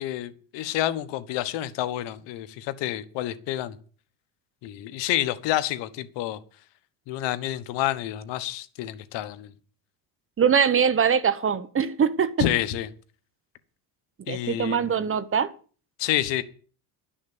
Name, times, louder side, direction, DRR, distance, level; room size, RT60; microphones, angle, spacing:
voice 1, 0.0-3.8 4.6-6.4 7.1-9.5 12.4-12.9 14.3-14.9 16.0-16.4, left 13 dB, 85° left, 1.3 m, -28 dB
voice 2, 10.4-12.3 14.3-15.5, right 7 dB, 30° right, 1.1 m, -22 dB
12.0 x 6.4 x 9.4 m
cardioid pair, 115°, 42 cm